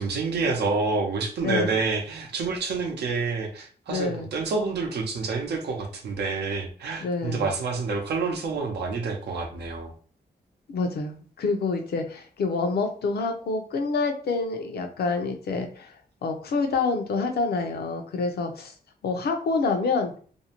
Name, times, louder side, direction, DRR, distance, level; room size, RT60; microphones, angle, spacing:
voice 1, 0.0-9.9, right 4 dB, 90° right, 3 dB, 0.6 m, -28 dB
voice 2, 1.4-1.8 3.9-4.3 7.0-7.5 10.7-15.9 16.2-18.7 19.0-20.1, left 4 dB, 70° left, 5 dB, 0.5 m, -27 dB
2.6 x 2.1 x 2.9 m, 0.42 s
cardioid pair, 100°, 17 cm